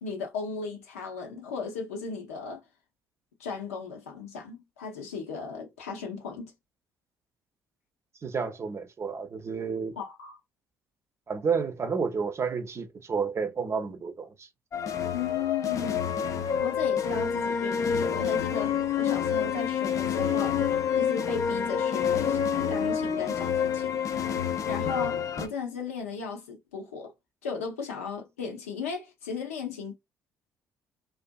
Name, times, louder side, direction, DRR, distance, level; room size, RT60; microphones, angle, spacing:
voice 1, 0.0-2.6 3.4-6.5 10.0-10.4 15.1-16.0 16.6-24.0 24.7-27.1 27.4-29.9, left 5 dB, 90° left, 0.7 m, -36 dB
voice 2, 8.2-10.0 11.3-14.5, right 5 dB, 40° right, 0.6 m, -30 dB
sound 1, 14.7-25.5, left 7 dB, 50° left, 0.5 m, -28 dB
2.5 x 2.4 x 2.2 m
hypercardioid pair, 50°, 7 cm